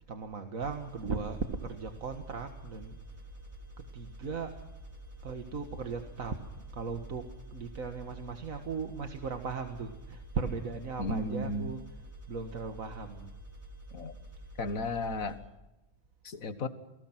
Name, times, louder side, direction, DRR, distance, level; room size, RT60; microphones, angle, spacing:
voice 1, 0.1-3.0 3.9-4.7 5.2-6.4 6.7-11.8 12.3-13.3, right 5 dB, 85° right, 6 dB, 2.0 m, -37 dB
sound 1, 0.6-15.4, right 1 dB, 20° right, 4.4 m, -49 dB
sound 2, 1.2-15.5, left 1 dB, 60° left, 2.0 m, -55 dB
voice 2, 11.0-11.7 13.9-14.1 14.6-15.4 16.2-16.7, left 2 dB, 90° left, 10 dB, 2.0 m, -34 dB
29.0 x 19.5 x 6.0 m, 1.0 s
omnidirectional pair, 1.4 m